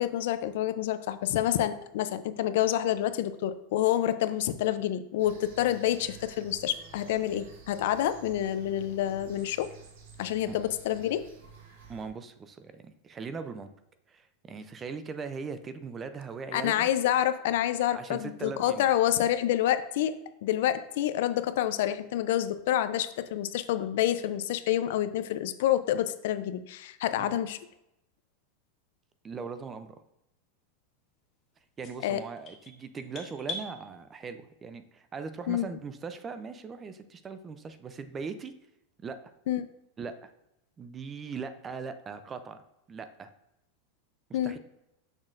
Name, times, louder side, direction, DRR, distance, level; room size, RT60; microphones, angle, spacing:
voice 1, 0.0-9.7 10.2-11.2 16.5-27.6 32.0-32.2 35.5-35.7 39.5-39.7 44.3-44.6, left 12 dB, 65° left, 12 dB, 0.4 m, -28 dB
sound 1, 5.2-12.1, right 5 dB, 70° right, 1.3 m, -51 dB
voice 2, 11.9-13.7 14.1-16.9 17.9-18.9 27.2-27.3 29.2-30.0 31.8-38.5 39.0-39.2 40.0-40.3 40.8-42.6 42.9-43.3 44.3-44.6, right 5 dB, 20° right, 10 dB, 0.4 m, -40 dB
sound 2, 31.8-33.7, left 3 dB, 30° left, 1.6 m, -41 dB
6.3 x 6.1 x 2.5 m, 0.85 s
supercardioid pair, 155°, 0 cm